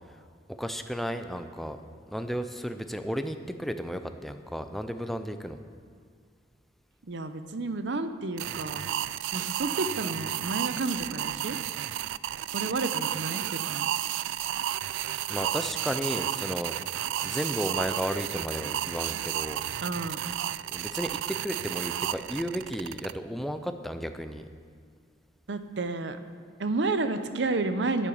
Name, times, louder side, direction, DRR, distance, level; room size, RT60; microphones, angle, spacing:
voice 1, 0.6-1.8 2.1-5.6 15.3-16.8 17.2-19.6 20.6-24.5, equal, ahead, 8 dB, 0.5 m, -33 dB
voice 2, 7.0-8.9 9.3-11.6 12.5-13.9 19.8-20.2 25.5-26.2 26.6-28.1, right 3 dB, 65° right, 10 dB, 0.7 m, -31 dB
sound 1, 8.4-23.1, right 12 dB, 85° right, 0.3 m, -32 dB
10.0 x 8.8 x 7.1 m, 2.1 s
head